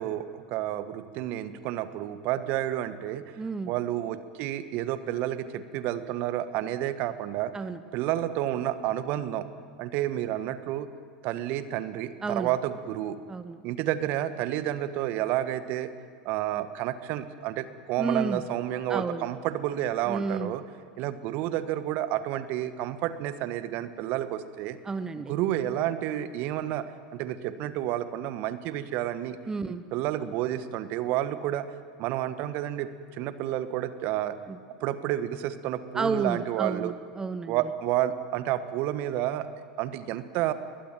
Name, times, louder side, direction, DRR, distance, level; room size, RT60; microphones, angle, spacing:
voice 1, 0.0-3.4 3.7-7.5 7.9-9.5 9.8-10.9 11.2-13.2 13.6-15.9 16.2-20.6 21.0-24.8 25.2-26.8 27.1-29.4 29.7-31.7 32.0-34.3 34.8-36.9 37.5-39.5 39.8-40.5, right 12 dB, 50° right, 12 dB, 1.3 m, -30 dB
voice 2, 3.4-3.7 7.5-7.8 12.2-12.5 13.3-13.6 18.0-18.4 18.9-19.3 20.1-20.5 24.8-25.3 29.5-29.8 34.5-34.6 35.9-37.6, right 4 dB, 15° right, 12 dB, 1.0 m, -31 dB
22.0 x 19.5 x 9.1 m, 2.1 s
figure-of-eight pair, 80°, 4 cm